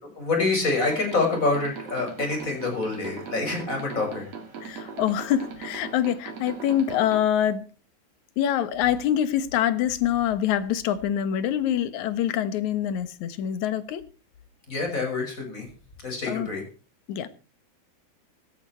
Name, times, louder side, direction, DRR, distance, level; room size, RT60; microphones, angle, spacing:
voice 1, 0.2-4.3 14.7-15.6 16.0-16.6, left 3 dB, 20° left, 6.3 m, -26 dB
sound 1, 0.7-7.2, right 5 dB, 40° right, 4.0 m, -39 dB
voice 2, 4.6-7.7 8.4-14.0 16.3-16.5 17.1-17.3, left 10 dB, 65° left, 2.1 m, -25 dB
17.5 x 13.5 x 4.5 m
omnidirectional pair, 4.8 m